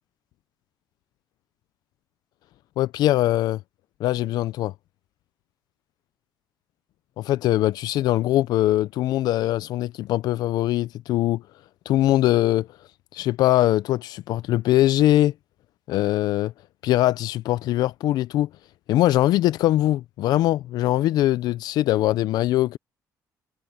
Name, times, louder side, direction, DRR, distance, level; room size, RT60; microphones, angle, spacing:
voice 1, 2.8-3.6 4.0-4.7 7.2-11.4 11.9-12.7 13.1-15.3 15.9-16.5 16.8-18.5 18.9-22.8, left 14 dB, 75° left, 0.4 m, -22 dB
cardioid pair, 110°, 7 cm